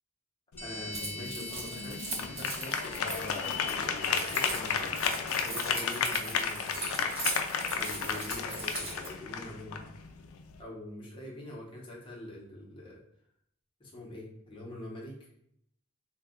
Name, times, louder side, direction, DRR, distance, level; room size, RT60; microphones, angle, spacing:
sound 1, 0.5-10.6, left 6 dB, 80° left, 0.3 m, -33 dB
voice 1, 0.6-7.0 7.7-9.8 10.6-13.0 13.8-15.3, left 1 dB, 25° left, -4 dB, 0.8 m, -44 dB
sound 2, 0.6-4.8, left 1 dB, 10° left, 0.4 m, -46 dB
Keys jangling, 0.9-9.1, right 2 dB, 30° right, 0.9 m, -39 dB
2.6 x 2.3 x 3.6 m, 0.71 s
head